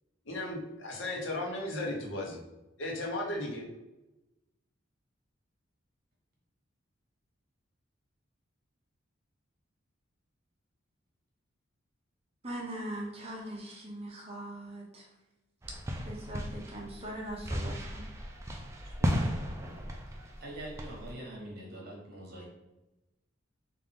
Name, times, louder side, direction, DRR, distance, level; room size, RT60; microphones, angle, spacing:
voice 1, 0.3-2.4 2.8-3.6, left 1 dB, 70° left, -1 dB, 0.8 m, -35 dB
voice 2, 12.4-15.0 16.1-18.0, right 1 dB, 30° right, -2 dB, 0.8 m, -41 dB
sound 1, 15.6-21.1, equal, 15° right, 0.3 m, -35 dB
voice 3, 18.8-19.4 20.4-22.4, right 1 dB, 50° right, -2 dB, 1.2 m, -44 dB
3.7 x 2.5 x 3.4 m, 0.98 s
head